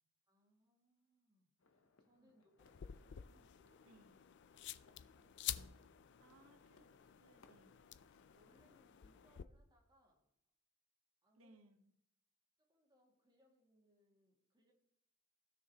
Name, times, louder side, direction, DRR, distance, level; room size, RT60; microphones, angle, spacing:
voice 1, 0.3-4.0 4.7-6.1 8.3-10.4 11.2-11.6 12.6-14.7, equal, 20° right, -1 dB, 2.1 m, -75 dB
sound 1, 1.6-9.0, left 3 dB, 80° left, 0.8 m, -73 dB
sound 2, 2.6-9.4, left 11 dB, 55° left, 0.4 m, -50 dB
voice 2, 3.8-4.2 6.2-7.8 11.3-11.9, right 2 dB, 85° right, 6 dB, 1.1 m, -67 dB
17.0 x 6.3 x 2.9 m, 0.77 s
head